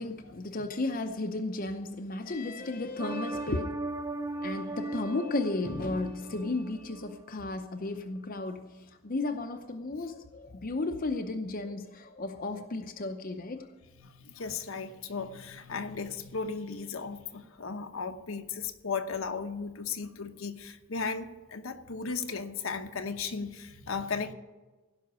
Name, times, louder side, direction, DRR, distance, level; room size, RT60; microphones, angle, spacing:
voice 1, 0.0-3.7 4.4-13.7, left 2 dB, 40° left, 0.8 m, -34 dB
sound 1, 3.0-7.2 7.6-7.7, right 2 dB, 15° right, 0.4 m, -38 dB
voice 2, 14.0-24.3, left 5 dB, 70° left, 0.9 m, -36 dB
16.5 x 5.8 x 9.2 m
head